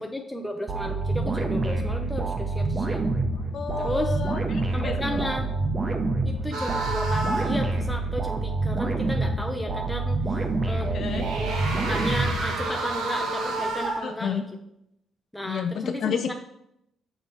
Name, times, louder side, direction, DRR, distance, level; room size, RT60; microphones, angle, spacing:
voice 1, 0.0-3.0 3.8-4.2 4.7-5.5 6.2-10.2 10.7-10.9 11.5-14.4 15.3-16.3, left 1 dB, 5° left, 2 dB, 0.6 m, -33 dB
sound 1, 0.7-12.9, right 3 dB, 30° right, 0.8 m, -27 dB
voice 2, 3.5-5.3 10.9-11.3 14.0-14.4 15.4-16.3, left 7 dB, 60° left, 7 dB, 0.3 m, -31 dB
sound 2, 6.5-7.7 10.8-14.2, right 2 dB, 85° right, 1.1 m, -30 dB
6.9 x 2.9 x 5.5 m, 0.79 s
cardioid pair, 90°, 0 cm